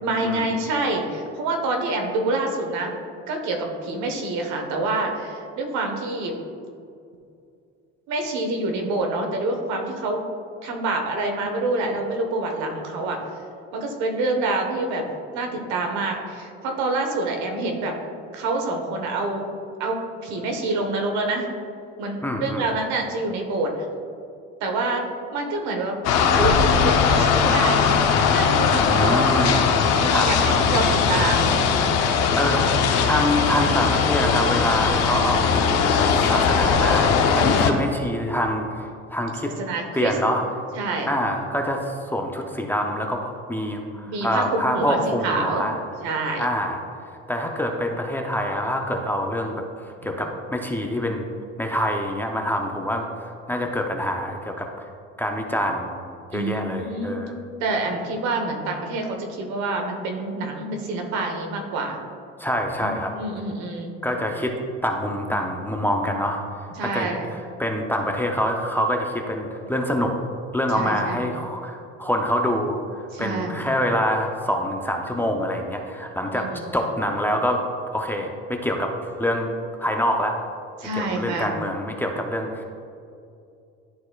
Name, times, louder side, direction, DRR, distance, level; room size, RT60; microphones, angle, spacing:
voice 1, 0.0-2.9 3.3-6.4 8.1-10.2 10.6-13.2 13.7-15.0 15.3-18.0 18.3-19.5 19.8-21.5 22.0-23.7 24.6-26.0 26.3-29.2 29.9-31.5 37.4-37.7 39.6-40.1 40.8-41.1 44.1-45.6 46.0-46.5 56.3-57.2 57.6-62.0 62.8-63.9 66.8-67.3 70.7-71.2 73.1-73.6 76.2-76.7 80.8-81.5, right 2 dB, 70° right, 3 dB, 1.2 m, -27 dB
voice 2, 22.2-22.7 28.9-29.7 30.1-30.3 32.3-32.8 33.1-39.5 39.9-40.4 41.1-45.7 46.4-46.8 47.3-51.3 51.6-54.9 55.2-55.9 56.3-57.4 62.4-63.1 64.0-64.5 64.8-70.1 70.5-76.5 76.7-77.6 77.9-79.5 79.8-80.3 80.9-82.6, equal, 5° left, 1 dB, 0.5 m, -26 dB
sound 1, 26.0-37.7, left 6 dB, 60° left, 0.8 m, -20 dB
11.5 x 4.2 x 2.3 m, 2.5 s
cardioid pair, 120°, 29 cm